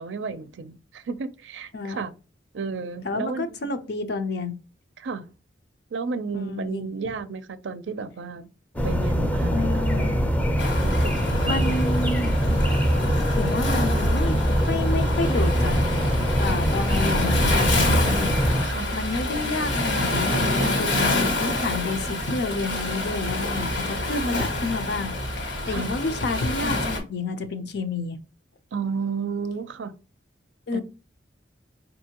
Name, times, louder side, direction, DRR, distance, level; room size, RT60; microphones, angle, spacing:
voice 1, 0.0-2.1 2.5-3.5 5.0-5.3 5.9-8.5 8.8-10.2 10.8-11.9 18.6-18.9 25.7-25.9 28.7-29.9 30.7-30.8, right 5 dB, 70° right, 0.4 m, -33 dB
voice 2, 3.0-4.6 6.3-6.9 9.5-10.3 11.4-12.3 13.4-14.4 14.7-15.8 16.4-18.4 18.9-28.2 30.7-30.8, left 3 dB, 60° left, 0.6 m, -29 dB
sound 1, 8.8-18.6, equal, 10° left, 0.5 m, -23 dB
Waves surf, 10.6-27.0, left 2 dB, 80° left, 1.6 m, -27 dB
4.5 x 2.7 x 2.8 m
head